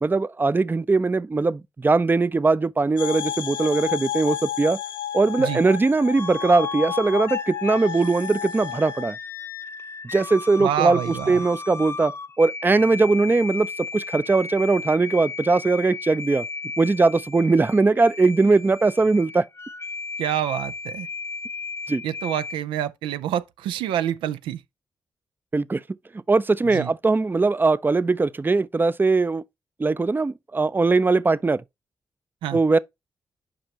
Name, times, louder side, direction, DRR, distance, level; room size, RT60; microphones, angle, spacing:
voice 1, 0.0-4.8 5.1-9.2 10.1-16.5 16.8-19.5 21.9-22.0 25.5-25.8 26.3-29.4 29.8-31.6 32.5-32.8, right 3 dB, 25° right, 0.5 m, -20 dB
sound 1, 3.0-9.1, left 10 dB, 75° left, 0.6 m, -32 dB
sound 2, 6.1-22.5, left 4 dB, 30° left, 0.6 m, -35 dB
voice 2, 10.6-11.4 20.2-21.1 22.0-24.6 26.6-26.9 32.4-32.6, right 11 dB, 85° right, 0.4 m, -27 dB
8.7 x 5.3 x 2.8 m
supercardioid pair, 40°, 8 cm